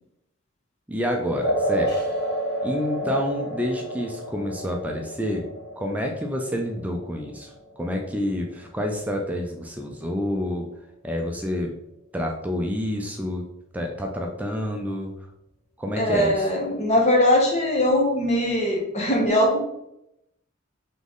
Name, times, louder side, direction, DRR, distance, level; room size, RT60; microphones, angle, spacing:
voice 1, 0.9-2.0 2.6-5.5 5.8-10.7 11.0-11.7 12.1-13.5 13.7-15.1 15.8-16.5, equal, 5° right, 1 dB, 0.4 m, -28 dB
sound 1, 1.4-8.4, right 1 dB, 50° left, 1.5 m, -30 dB
voice 2, 16.0-19.6, left 1 dB, 30° left, 0 dB, 0.9 m, -21 dB
3.8 x 3.1 x 3.5 m, 0.82 s
head